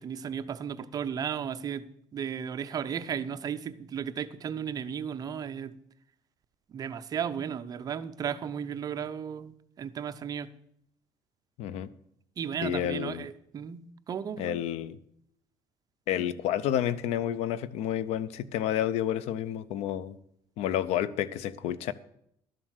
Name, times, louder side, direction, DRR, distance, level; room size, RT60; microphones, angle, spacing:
voice 1, 0.0-1.8 2.1-5.7 6.7-10.5 12.4-14.6, right 8 dB, 35° right, 0.6 m, -35 dB
voice 2, 11.6-11.9 12.6-13.3 14.4-15.0 16.1-20.2 20.6-21.9, left 11 dB, 80° left, 0.6 m, -30 dB
12.0 x 7.6 x 6.4 m
cardioid pair, 145°, 11 cm